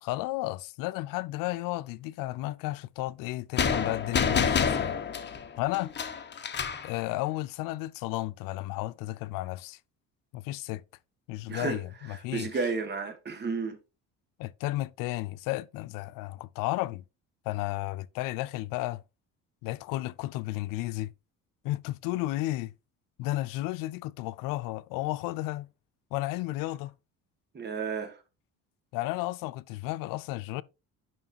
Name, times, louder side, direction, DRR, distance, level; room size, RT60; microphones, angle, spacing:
voice 1, 0.0-5.0 5.6-5.9 6.8-9.8 10.3-10.8 11.3-12.5 14.4-17.0 17.5-19.0 19.6-21.1 21.6-22.7 23.2-25.7 26.1-26.9 28.9-30.6, left 17 dB, 85° left, 0.5 m, -33 dB
sound 1, 3.6-6.9, left 6 dB, 35° left, 1.1 m, -28 dB
voice 2, 11.5-11.8 12.3-13.8 27.5-28.2, right 4 dB, 30° right, 1.9 m, -32 dB
9.4 x 5.8 x 2.8 m
cardioid pair, 115°, 32 cm